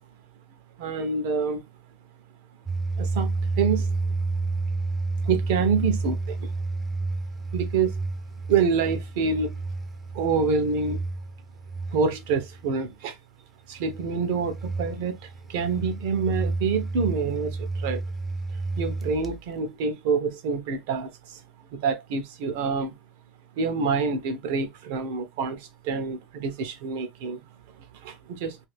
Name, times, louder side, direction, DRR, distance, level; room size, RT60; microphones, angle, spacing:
voice 1, 0.8-1.6 3.0-3.9 5.2-6.5 7.5-8.0 8.5-9.5 10.1-11.0 11.9-13.2 13.7-18.0 18.8-21.4 21.7-23.0 23.6-27.4 27.9-28.6, right 5 dB, 75° right, 0.8 m, -27 dB
sound 1, 2.7-12.6 13.8-19.4, right 3 dB, 10° right, 0.4 m, -31 dB
2.7 x 2.6 x 3.3 m
cardioid pair, 170°, 0 cm